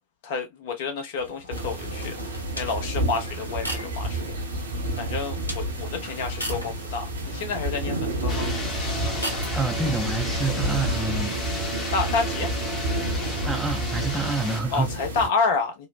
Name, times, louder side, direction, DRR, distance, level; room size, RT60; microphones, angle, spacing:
voice 1, 0.2-4.2 5.0-8.5 11.9-12.5 14.7-15.9, left 4 dB, 50° left, 0.8 m, -29 dB
sound 1, 1.1-9.9, equal, 85° left, 0.7 m, -40 dB
sound 2, 1.5-15.3, right 1 dB, 70° right, 0.7 m, -30 dB
sound 3, 8.3-14.6, left 2 dB, 25° left, 1.0 m, -34 dB
voice 2, 9.5-11.4 13.4-14.9, right 3 dB, 5° right, 0.5 m, -27 dB
3.0 x 2.0 x 2.3 m
figure-of-eight pair, 90°, 0 cm